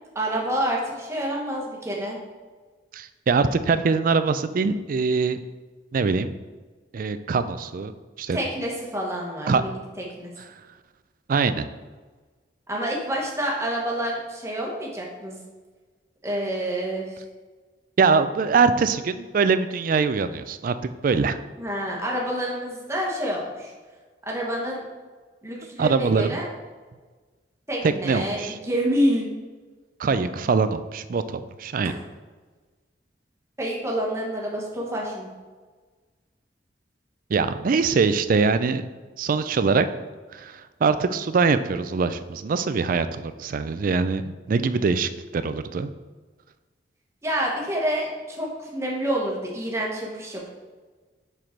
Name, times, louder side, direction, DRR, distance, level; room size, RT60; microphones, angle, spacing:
voice 1, 0.1-2.2 8.3-10.3 12.7-15.4 16.2-17.2 21.6-23.7 24.2-24.8 25.4-26.4 27.7-29.3 30.1-30.4 33.6-35.3 47.2-50.5, equal, 15° right, -3 dB, 1.3 m, -28 dB
voice 2, 2.9-5.4 5.9-6.3 6.9-7.9 8.2-8.4 9.5-9.6 11.3-11.6 18.0-21.4 25.8-26.4 28.0-28.6 30.0-31.9 37.3-38.8 39.2-39.9 40.3-45.9, right 4 dB, 50° right, 12 dB, 0.4 m, -23 dB
5.6 x 5.0 x 4.5 m, 1.4 s
head